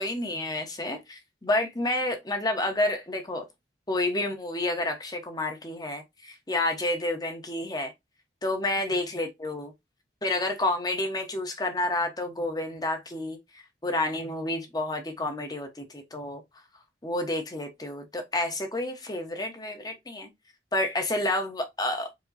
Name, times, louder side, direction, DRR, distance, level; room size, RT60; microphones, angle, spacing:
voice 1, 0.0-3.5 3.9-7.9 8.4-9.7 10.2-13.4 13.8-16.4 17.0-20.3 20.7-22.1, left 2 dB, 20° left, 1.0 m, -29 dB
4.8 x 2.2 x 4.0 m
head